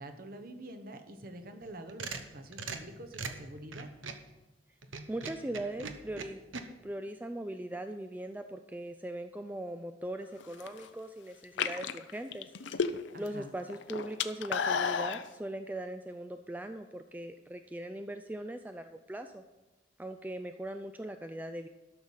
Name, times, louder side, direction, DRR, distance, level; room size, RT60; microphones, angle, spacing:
voice 1, 0.0-3.9 13.1-13.5, right 1 dB, 50° right, 7 dB, 1.0 m, -46 dB
sound 1, 1.6-4.3 4.8-6.6, right 4 dB, 85° right, 0.9 m, -41 dB
voice 2, 5.1-6.4 6.8-12.5 13.2-19.4 20.0-21.7, right 1 dB, 10° right, 7 dB, 0.3 m, -40 dB
sound 2, 10.4-10.9 11.4-13.3 13.6-15.2, left 6 dB, 70° left, 0.6 m, -32 dB
12.5 x 6.5 x 5.5 m, 1.1 s
head